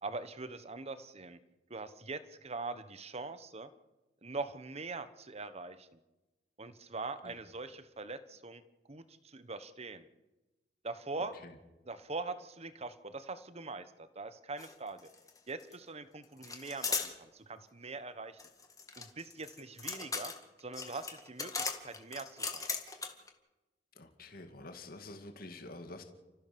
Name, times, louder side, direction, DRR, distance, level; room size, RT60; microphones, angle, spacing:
voice 1, 0.0-1.4 1.7-3.7 4.2-5.9 6.6-8.6 8.9-10.1 10.8-11.3 11.9-15.1 15.5-18.4 19.0-20.3 20.6-22.7, right 3 dB, 35° right, 12 dB, 1.2 m, -42 dB
sound 1, 14.6-14.7 15.0-15.7 16.4-17.1 18.4-23.3, left 5 dB, 20° left, 2.1 m, -38 dB
voice 2, 23.9-26.0, left 2 dB, 55° left, 6 dB, 2.3 m, -48 dB
30.0 x 14.5 x 7.0 m, 1.1 s
head